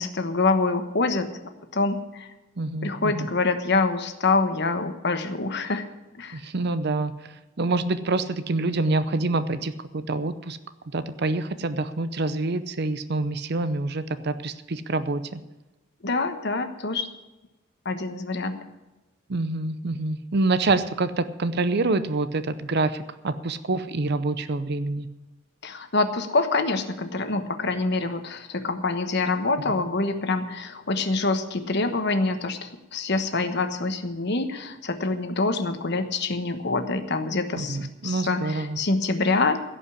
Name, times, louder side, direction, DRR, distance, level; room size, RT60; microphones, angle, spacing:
voice 1, 0.0-2.3 2.8-5.8 6.2-6.4 16.0-17.1 17.8-18.6 25.6-39.6, left 3 dB, 60° left, 8 dB, 1.2 m, -26 dB
voice 2, 2.6-3.3 6.3-7.1 7.6-10.6 10.9-15.4 19.3-25.1 37.6-38.8, right 3 dB, 55° right, 12 dB, 0.7 m, -26 dB
16.5 x 5.5 x 9.9 m, 1.1 s
head